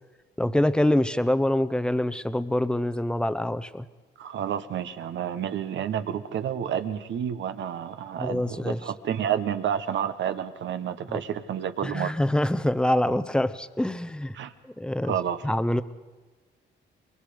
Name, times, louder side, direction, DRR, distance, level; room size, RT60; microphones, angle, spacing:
voice 1, 0.4-3.9 8.2-8.8 11.1-11.2 11.8-14.4 14.8-15.1 15.4-15.8, left 1 dB, 5° left, 12 dB, 0.8 m, -25 dB
voice 2, 4.2-12.1 14.4-14.5 15.0-15.5, right 9 dB, 70° right, 10 dB, 1.2 m, -30 dB
23.5 x 22.0 x 5.1 m, 1.3 s
cardioid pair, 90°, 20 cm